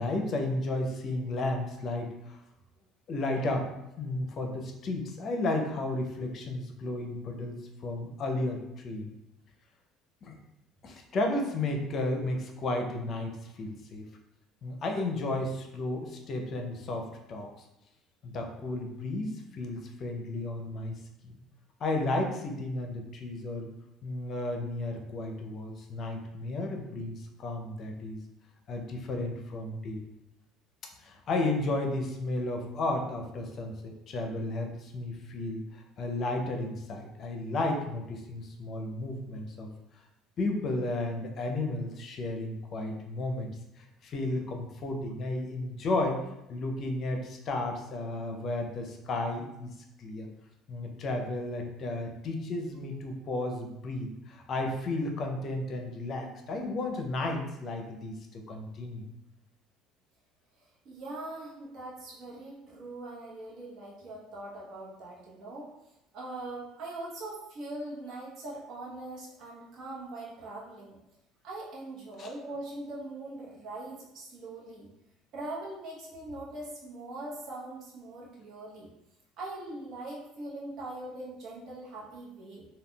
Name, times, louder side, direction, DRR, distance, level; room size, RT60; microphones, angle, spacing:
voice 1, 0.0-2.4 3.1-3.7 4.0-9.1 10.2-10.4 10.8-14.1 14.6-17.5 18.2-21.0 21.2-21.4 21.8-23.7 24.0-28.2 28.7-30.0 31.0-39.7 40.4-46.2 46.5-49.7 50.0-50.3 50.7-59.1 72.2-72.3, left 2 dB, 50° left, 3 dB, 0.5 m, -33 dB
voice 2, 60.6-65.7 66.1-71.0 71.4-74.9 75.3-78.9 79.4-82.7, right 2 dB, 60° right, -5 dB, 0.9 m, -41 dB
3.5 x 2.2 x 2.3 m, 0.89 s
supercardioid pair, 80°, 0 cm